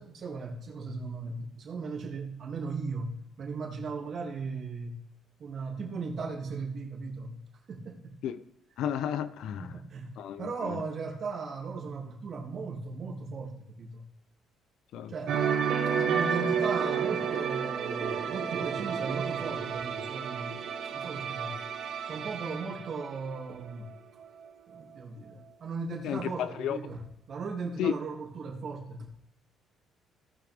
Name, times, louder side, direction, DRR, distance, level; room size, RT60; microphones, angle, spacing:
voice 1, 0.0-5.0 5.4-7.4 7.7-8.2 9.6-10.1 10.4-14.1 15.1-21.6 22.0-23.9 24.7-29.1, right 4 dB, 45° right, 2.5 m, -37 dB
voice 2, 8.8-9.7 10.2-10.8 14.9-15.1 26.0-26.8 27.8-27.9, left 9 dB, 75° left, 0.6 m, -32 dB
sound 1, 15.3-23.9 24.2-24.4, right 7 dB, 70° right, 1.4 m, -31 dB
17.5 x 6.0 x 3.5 m
cardioid pair, 125°, 0 cm